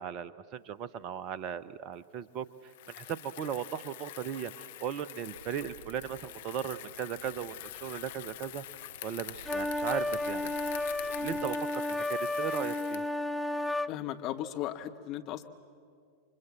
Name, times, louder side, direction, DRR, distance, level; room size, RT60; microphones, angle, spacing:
voice 1, 0.0-2.5 3.0-8.6 9.0-10.5 11.0-13.0, right 8 dB, 40° right, 17 dB, 0.9 m, -37 dB
Bicycle, 2.7-13.2, left 15 dB, 55° left, 0.7 m, -46 dB
sound 1, 5.3-11.4, right 7 dB, 60° right, 3.6 m, -53 dB
sound 2, 9.4-13.9, left 2 dB, 5° left, 0.6 m, -32 dB
voice 2, 13.9-15.5, left 12 dB, 40° left, 7 dB, 1.3 m, -36 dB
29.5 x 24.5 x 7.4 m, 2.2 s
figure-of-eight pair, 90°, 0 cm